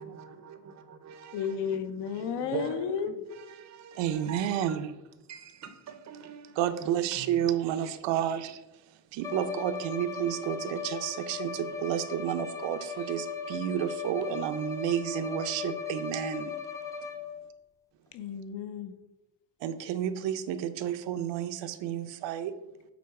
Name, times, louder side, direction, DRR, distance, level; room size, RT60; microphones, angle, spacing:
voice 1, 0.0-1.4 2.2-2.8 3.4-4.8 5.3-7.3 8.1-8.4, right 6 dB, 40° right, 0.6 m, -42 dB
voice 2, 1.3-3.1 18.1-18.9, left 7 dB, 70° left, 0.8 m, -33 dB
voice 3, 4.0-5.0 6.5-8.6 9.1-16.6 19.6-22.5, right 10 dB, 75° right, 0.7 m, -31 dB
Bowed string instrument, 9.2-17.5, left 6 dB, 10° left, 0.4 m, -38 dB
8.3 x 3.9 x 4.7 m
cardioid pair, 175°, 44 cm